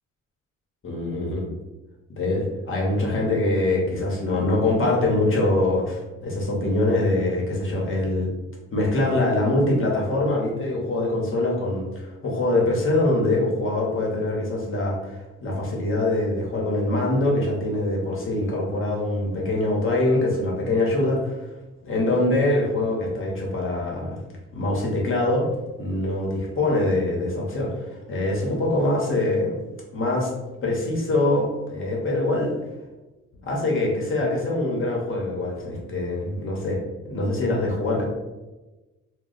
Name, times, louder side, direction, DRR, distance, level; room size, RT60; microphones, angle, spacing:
voice 1, 0.8-1.5 2.2-8.3 8.7-21.4 21.8-24.2 24.5-25.5 25.8-29.5 29.9-30.3 30.6-32.5 33.4-38.0, left 2 dB, 45° left, -3 dB, 1.0 m, -24 dB
2.2 x 2.1 x 3.8 m, 1.1 s
cardioid pair, 90°, 30 cm